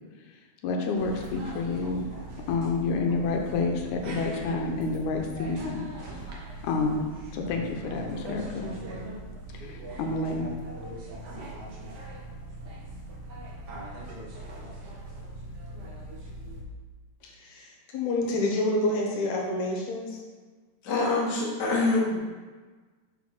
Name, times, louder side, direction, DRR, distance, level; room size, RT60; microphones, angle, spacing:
voice 1, 0.6-2.1 2.5-5.9 6.1-6.2 6.6-7.1 7.3-8.7 9.5-10.5, left 3 dB, 90° left, 2 dB, 2.2 m, -29 dB
sound 1, 0.9-16.6, right 1 dB, 90° right, 0.9 m, -40 dB
voice 2, 17.2-20.2, left 2 dB, 70° left, -1 dB, 2.3 m, -28 dB
voice 3, 20.8-22.2, left 3 dB, 45° left, -5 dB, 1.7 m, -25 dB
5.4 x 4.1 x 5.8 m, 1.4 s
omnidirectional pair, 3.4 m